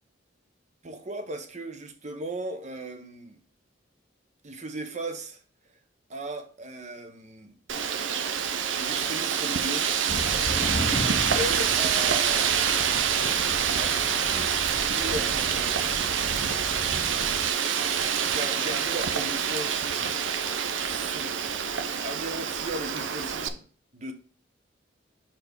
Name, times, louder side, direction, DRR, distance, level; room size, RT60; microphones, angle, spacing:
voice 1, 0.8-3.4 4.4-5.4 6.1-7.6 8.7-9.9 10.8-12.5 13.8-14.0 14.3-14.6 14.9-16.3 18.2-20.0 20.8-21.3 22.0-23.7 23.9-24.1, right 1 dB, 40° right, 0.9 m, -37 dB
Wind, 7.7-23.5, right 7 dB, 80° right, 0.6 m, -26 dB
sound 1, 10.1-17.5, equal, 20° left, 0.7 m, -36 dB
5.9 x 4.4 x 5.1 m
head